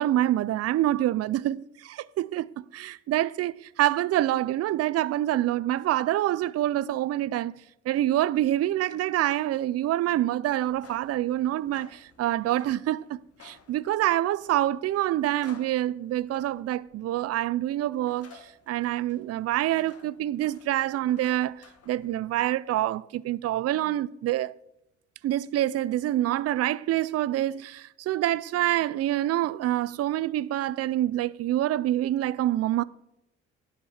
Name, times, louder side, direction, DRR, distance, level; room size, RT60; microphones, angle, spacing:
voice 1, 0.0-7.5 7.9-18.3 18.7-21.6 21.9-24.5 25.2-32.8, right 13 dB, 55° right, 0.4 m, -26 dB
sound 1, 10.6-22.5, left 5 dB, 50° left, 1.6 m, -55 dB
11.0 x 5.8 x 6.4 m
cardioid pair, 90°, 30 cm